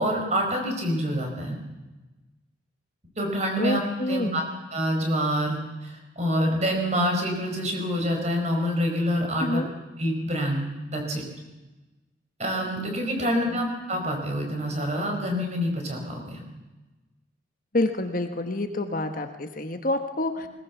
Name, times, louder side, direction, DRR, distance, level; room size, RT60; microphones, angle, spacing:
voice 1, 0.0-1.6 3.2-3.8 4.1-4.4 4.7-9.6 10.0-11.2 12.4-16.4, equal, 35° right, 3 dB, 5.0 m, -26 dB
voice 2, 3.6-4.5 9.4-9.7 13.2-13.6 17.7-20.5, left 2 dB, 45° left, 6 dB, 1.4 m, -28 dB
20.5 x 20.0 x 7.2 m, 1.1 s
head